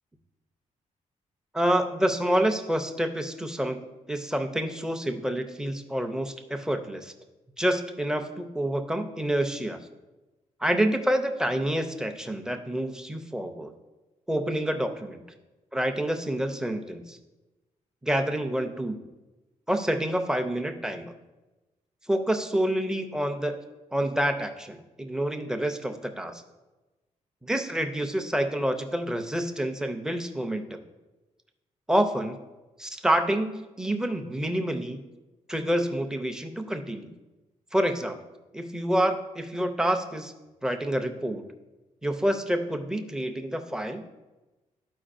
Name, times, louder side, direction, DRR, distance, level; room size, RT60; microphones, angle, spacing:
voice 1, 1.5-7.1 7.6-9.8 10.6-13.7 14.3-15.2 15.7-17.2 18.0-19.0 19.7-21.1 22.1-23.6 23.9-26.4 27.4-30.8 31.9-32.4 32.8-35.1 35.5-37.1 37.7-38.2 38.5-40.3 40.6-41.4 42.0-44.0, right 1 dB, 5° right, 6 dB, 0.4 m, -28 dB
12.5 x 4.7 x 2.5 m, 1.1 s
wide cardioid pair, 170°, 13 cm